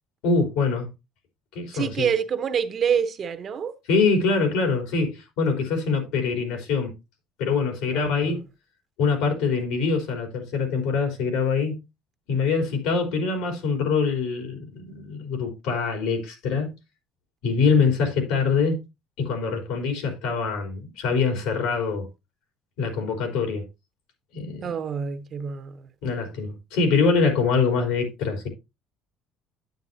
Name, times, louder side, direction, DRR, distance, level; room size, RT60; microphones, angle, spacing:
voice 1, 0.2-0.9 1.5-2.1 3.9-6.9 7.4-8.4 9.0-11.8 12.3-16.7 17.4-18.8 19.2-22.1 22.8-23.7 24.3-24.7 26.0-28.5, left 4 dB, 90° left, 3.8 m, -24 dB
voice 2, 1.7-3.7 7.9-8.4 17.7-17.9 24.6-25.9, right 7 dB, 35° right, 0.9 m, -27 dB
9.3 x 9.1 x 2.7 m
cardioid pair, 160°, 0 cm